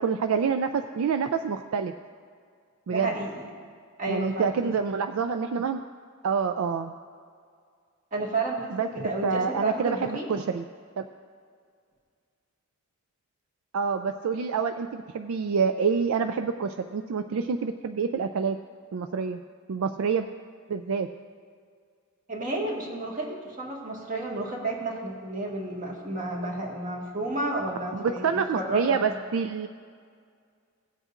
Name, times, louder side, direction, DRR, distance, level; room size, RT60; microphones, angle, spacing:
voice 1, 0.0-1.9 2.9-3.1 4.1-5.8 6.2-6.9 8.7-8.9 9.2-10.6 11.0-11.1 13.7-18.6 18.9-19.4 19.7-20.3 20.7-21.1 27.9-29.7, right 6 dB, 70° right, 7 dB, 0.4 m, -27 dB
voice 2, 2.9-3.4 4.0-4.7 8.1-10.3 22.3-29.2, right 2 dB, 40° right, -2 dB, 1.6 m, -31 dB
17.0 x 8.0 x 2.5 m, 2.1 s
head